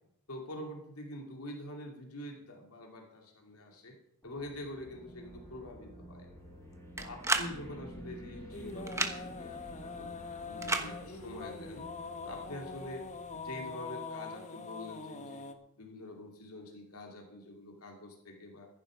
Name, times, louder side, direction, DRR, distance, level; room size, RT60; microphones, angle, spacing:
voice 1, 0.3-4.0 4.2-6.3 7.0-10.1 10.5-11.9 12.2-13.1 13.3-15.4 15.8-18.7, left 1 dB, 90° left, 1 dB, 2.6 m, -45 dB
sound 1, 4.2-14.4, right 1 dB, 15° left, 4.6 m, -50 dB
sound 2, 7.0-7.5 8.9-9.2 10.6-10.9, right 3 dB, 15° right, 1.1 m, -30 dB
sound 3, 8.5-15.5, left 4 dB, 35° left, 1.1 m, -43 dB
15.0 x 10.0 x 5.1 m, 0.78 s
head